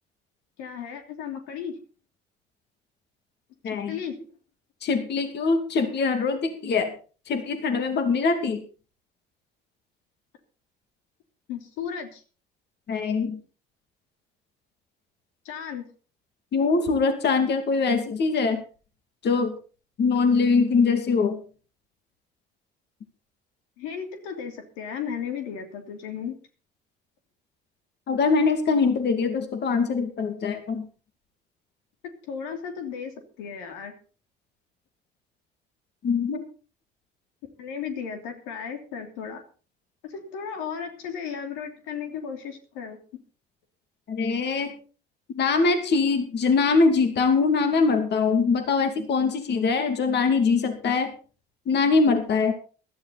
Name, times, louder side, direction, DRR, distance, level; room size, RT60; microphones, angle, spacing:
voice 1, 0.6-1.7 3.7-4.2 11.5-12.2 15.4-15.9 23.8-26.3 32.2-33.9 37.6-39.4 40.1-43.0, left 7 dB, 85° left, 5 dB, 3.0 m, -35 dB
voice 2, 3.6-4.0 4.8-6.9 7.3-8.6 12.9-13.4 16.5-18.6 19.2-19.6 20.0-21.4 28.1-30.9 36.0-36.4 44.1-44.7 45.3-51.1 51.7-52.5, left 4 dB, 55° left, 7 dB, 2.6 m, -23 dB
16.0 x 13.0 x 4.2 m, 0.37 s
supercardioid pair, 80°, 20 cm